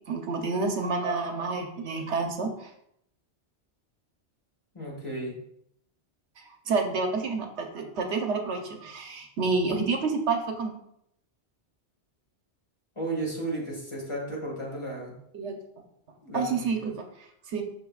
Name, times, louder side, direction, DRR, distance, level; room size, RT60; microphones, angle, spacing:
voice 1, 0.1-2.7 6.4-10.7 15.3-15.6 16.3-17.0 17.5-17.6, right 4 dB, 80° right, 4 dB, 1.2 m, -29 dB
voice 2, 4.7-5.4 13.0-15.2 16.2-16.7, right 2 dB, 25° left, -3 dB, 1.9 m, -34 dB
11.5 x 3.8 x 2.4 m, 0.74 s
omnidirectional pair, 1.1 m